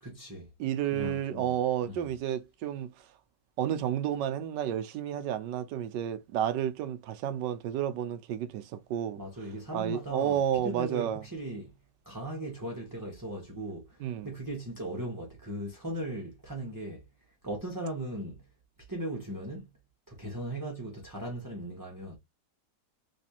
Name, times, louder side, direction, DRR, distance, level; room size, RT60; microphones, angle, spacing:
voice 1, 0.0-0.5 0.9-1.6 1.8-2.0 9.2-11.7 12.0-18.4 18.8-19.7 20.1-22.2, right 1 dB, 15° right, 0.8 m, -38 dB
voice 2, 0.6-2.9 3.6-9.2 9.7-11.2 14.0-14.3, right 10 dB, 80° right, 1.2 m, -31 dB
3.4 x 3.1 x 2.8 m
omnidirectional pair, 1.9 m